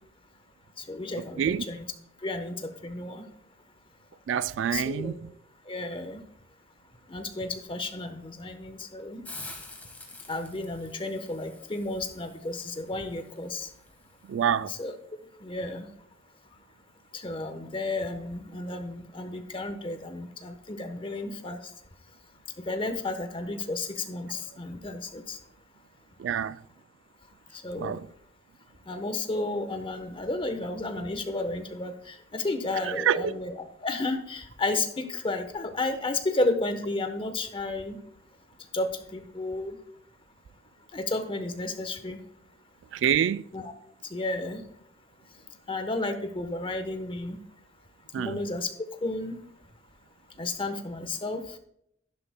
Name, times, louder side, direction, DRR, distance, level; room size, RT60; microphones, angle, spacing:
voice 1, 0.9-1.9 2.2-3.2 4.7-5.1 5.7-6.2 7.1-9.2 10.3-13.7 14.7-14.9 15.4-15.9 17.1-21.6 22.7-25.4 27.6-27.9 28.9-38.0 38.7-39.8 40.9-42.2 43.5-43.7 44.1-44.6 45.7-47.4 48.2-48.7 49.0-49.4 50.4-51.4, left 2 dB, 30° left, 1.0 m, -32 dB
voice 2, 4.3-5.1 14.3-14.7 26.2-26.6 27.8-28.0 33.0-33.3 42.9-43.4 48.1-48.4, right 8 dB, 80° right, 0.3 m, -26 dB
Hiss, 9.2-14.9, left 2 dB, 10° left, 1.4 m, -48 dB
11.5 x 11.0 x 2.2 m
head